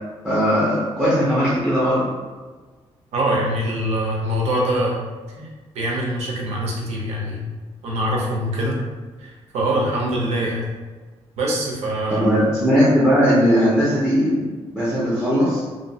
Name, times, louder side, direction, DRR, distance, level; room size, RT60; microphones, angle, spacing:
voice 1, 0.2-2.1 12.1-14.5 14.7-15.6, equal, 5° right, -8 dB, 0.5 m, -18 dB
voice 2, 3.1-5.0 5.7-7.4 7.8-8.8 9.2-10.6 11.4-12.4, right 1 dB, 85° right, -2 dB, 0.7 m, -23 dB
2.7 x 2.0 x 2.7 m, 1.3 s
wide cardioid pair, 160°, 11 cm